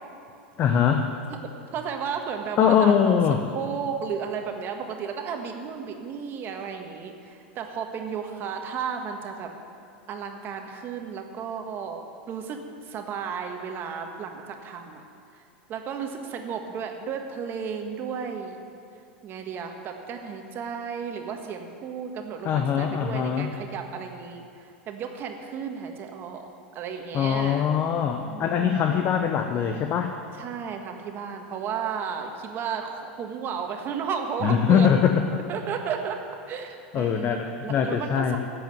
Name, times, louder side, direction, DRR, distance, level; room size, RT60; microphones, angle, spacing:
voice 1, 0.6-1.1 2.6-3.4 22.4-23.5 27.1-30.1 34.4-35.2 36.9-38.4, left 8 dB, 40° left, 5 dB, 0.9 m, -22 dB
voice 2, 1.7-3.2 3.5-9.5 10.1-15.0 15.3-15.4 15.7-18.6 19.2-27.7 28.2-29.0 30.3-35.0 35.5-36.2 36.5-38.4, right 6 dB, 40° right, 4 dB, 1.6 m, -33 dB
11.5 x 8.0 x 9.1 m, 2.4 s
hypercardioid pair, 110°, 6 cm